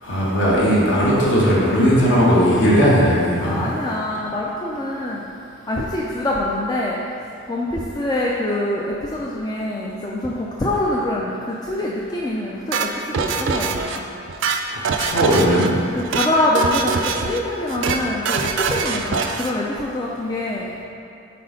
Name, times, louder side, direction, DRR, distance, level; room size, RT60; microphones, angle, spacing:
voice 1, 0.0-3.7 14.7-15.7, equal, 60° left, -6 dB, 1.4 m, -17 dB
voice 2, 3.4-5.2 5.7-7.0 7.5-14.0 15.9-20.7, left 1 dB, 20° left, -4 dB, 0.3 m, -24 dB
sound 1, 12.7-14.0 14.3-15.7 16.0-16.3 16.6-17.4 17.7-18.0 18.3-19.5, right 5 dB, 60° right, 0.3 m, -23 dB
4.3 x 4.3 x 5.1 m, 2.8 s
head